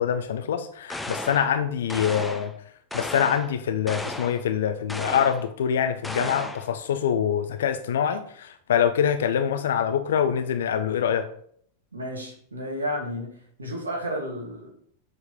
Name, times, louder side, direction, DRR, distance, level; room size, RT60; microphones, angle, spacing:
voice 1, 0.0-2.5 2.9-11.3, left 8 dB, 60° left, 9 dB, 0.6 m, -25 dB
sound 1, 0.9-1.5 1.9-2.5 2.9-3.5 3.9-4.4 4.9-5.5 6.0-6.7, left 2 dB, 5° left, 0.7 m, -34 dB
voice 2, 11.9-13.3 13.6-14.7, equal, 75° right, 1 dB, 2.3 m, -32 dB
7.5 x 4.8 x 5.1 m, 0.62 s
figure-of-eight pair, 90°, 0 cm